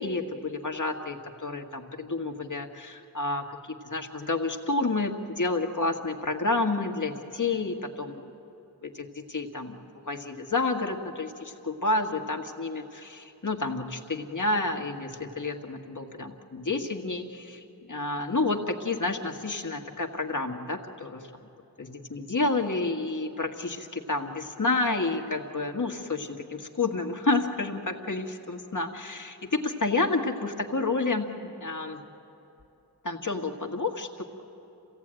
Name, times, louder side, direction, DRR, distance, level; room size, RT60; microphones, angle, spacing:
voice 1, 0.0-8.3 8.8-17.6 17.9-21.3 21.8-31.3 31.6-32.0 33.0-34.2, left 3 dB, 50° left, 3 dB, 1.7 m, -30 dB
27.0 x 16.5 x 9.0 m, 2.9 s
wide cardioid pair, 45°, 39 cm